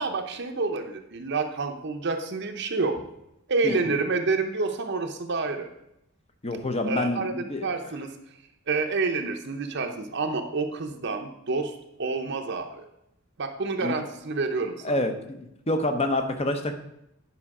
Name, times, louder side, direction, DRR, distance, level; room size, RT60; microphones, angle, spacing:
voice 1, 0.0-2.9 3.5-5.7 6.9-7.3 7.6-8.1 8.7-12.8 13.4-15.0, right 3 dB, 50° right, 4 dB, 0.7 m, -28 dB
voice 2, 6.4-7.7 13.8-13.9 14.8-16.7, left 1 dB, 25° left, 7 dB, 0.8 m, -27 dB
9.7 x 5.5 x 4.8 m, 0.83 s
head